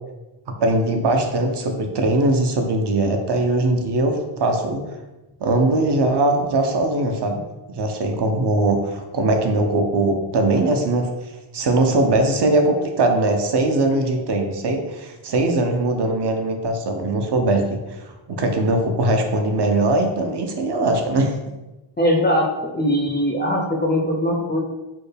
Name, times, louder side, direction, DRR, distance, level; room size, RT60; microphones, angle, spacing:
voice 1, 0.5-5.0 5.4-7.4 7.7-11.1 11.5-21.4, right 2 dB, 55° right, 3 dB, 0.5 m, -20 dB
voice 2, 22.0-24.6, equal, 25° left, -2 dB, 0.3 m, -21 dB
4.3 x 2.1 x 3.3 m, 1.1 s
wide cardioid pair, 150°, 50 cm